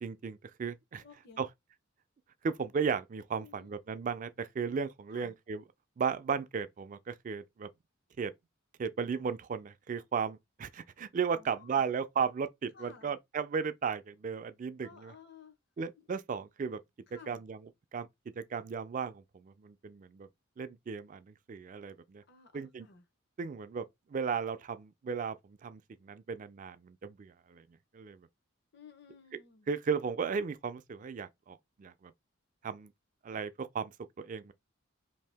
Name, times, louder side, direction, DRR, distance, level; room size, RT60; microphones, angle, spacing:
voice 1, 0.0-1.0 1.4-1.5 2.4-5.6 6.0-7.7 8.2-8.3 8.8-15.1 15.8-16.8 17.3-17.6 17.9-18.1 18.4-20.3 20.6-22.2 22.5-22.9 23.4-23.8 24.1-27.6 27.9-28.2 29.7-32.1 32.6-32.9 33.2-34.5, right 6 dB, 35° right, 0.3 m, -35 dB
voice 2, 1.0-1.5 3.4-3.8 5.1-5.3 11.3-11.9 12.7-13.1 14.8-15.6 16.0-16.1 17.1-17.4 22.3-23.0 28.7-29.7, left 5 dB, 50° left, 0.7 m, -56 dB
2.7 x 2.6 x 3.4 m
head